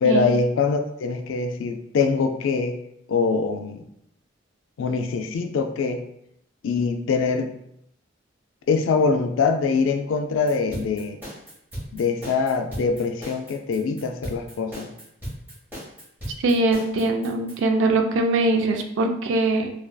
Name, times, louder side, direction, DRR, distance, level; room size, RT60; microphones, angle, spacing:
voice 1, 0.0-2.8 3.1-3.8 4.8-6.0 6.6-7.5 8.7-11.2 11.9-14.9, left 4 dB, 80° left, 6 dB, 0.3 m, -23 dB
sound 1, 10.5-17.6, equal, 10° right, 1.2 m, -36 dB
voice 2, 16.4-19.7, right 2 dB, 70° right, 5 dB, 0.3 m, -22 dB
2.5 x 2.3 x 2.2 m, 0.75 s
head